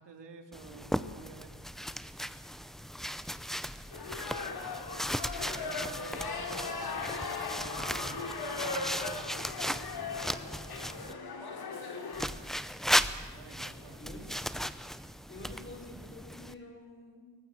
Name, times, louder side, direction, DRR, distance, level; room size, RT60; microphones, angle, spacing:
voice 1, 0.0-1.7 5.3-9.3 9.9-10.1 13.3-14.3, right 4 dB, 70° right, 5 dB, 3.2 m, -51 dB
sound 1, 0.5-11.1 12.1-16.5, equal, ahead, 0.6 m, -36 dB
sound 2, 3.9-12.2, left 4 dB, 55° left, 3.1 m, -38 dB
voice 2, 5.6-6.2 10.8-11.0 14.0-14.7 15.3-17.4, left 1 dB, 25° left, 2 dB, 5.7 m, -49 dB
23.0 x 19.0 x 7.9 m, 1.4 s
wide cardioid pair, 165°, 43 cm